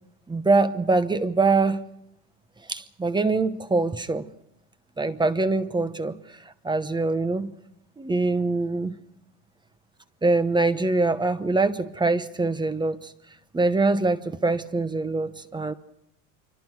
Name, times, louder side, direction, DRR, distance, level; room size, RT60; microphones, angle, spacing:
voice 1, 0.3-1.8 2.7-4.3 5.0-7.5 8.0-9.0 10.2-13.1 13.5-15.7, right 3 dB, 10° right, 12 dB, 0.9 m, -24 dB
27.5 x 25.0 x 4.7 m, 0.79 s
cardioid pair, 135°, 43 cm